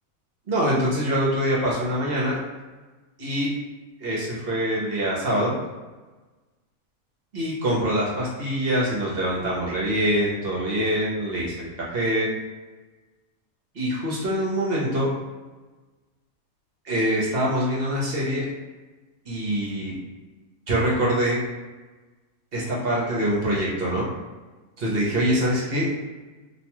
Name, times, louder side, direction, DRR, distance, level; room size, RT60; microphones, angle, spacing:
voice 1, 0.5-2.4 3.2-3.5 4.0-5.6 7.3-12.3 13.7-15.1 16.8-18.5 19.3-20.0 20.7-21.4 22.5-24.1 24.8-25.9, equal, 50° right, -5 dB, 0.8 m, -24 dB
2.6 x 2.2 x 2.9 m, 1.2 s
omnidirectional pair, 1.5 m